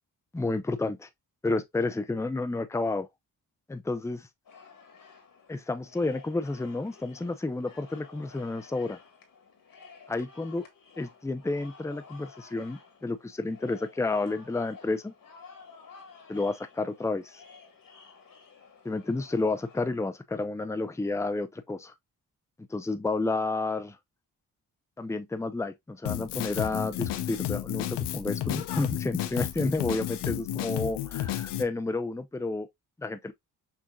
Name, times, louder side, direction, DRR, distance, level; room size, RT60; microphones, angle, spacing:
voice 1, 0.3-1.1 1.4-3.1 3.7-4.3 5.5-8.9 10.1-10.7 11.0-15.1 16.3-17.4 18.8-21.9 22.7-24.0 25.0-32.7 33.0-33.3, left 3 dB, 5° left, 0.6 m, -31 dB
sound 1, 4.4-19.8, left 5 dB, 55° left, 1.7 m, -53 dB
Drum kit, 26.1-31.6, left 12 dB, 90° left, 0.6 m, -32 dB
6.4 x 2.8 x 2.3 m
cardioid pair, 60°, 39 cm